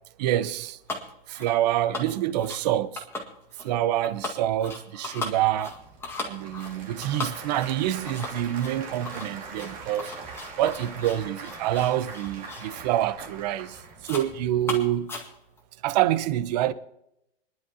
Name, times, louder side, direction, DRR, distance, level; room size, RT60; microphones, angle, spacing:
voice 1, 0.2-0.8 1.3-3.1 3.6-5.8 6.2-10.1 10.6-15.2 15.8-16.7, right 12 dB, 40° right, 0.9 m, -26 dB
sound 1, 0.9-1.1 1.3-1.6 1.9-2.6 2.9-3.7 4.0-12.8 13.2-13.4 13.7-14.3 14.6-15.6, left 2 dB, 10° left, 1.8 m, -37 dB
Applause / Crowd, 5.2-14.7, right 4 dB, 25° right, 2.2 m, -42 dB
25.5 x 11.0 x 2.9 m
hypercardioid pair, 150°, 31 cm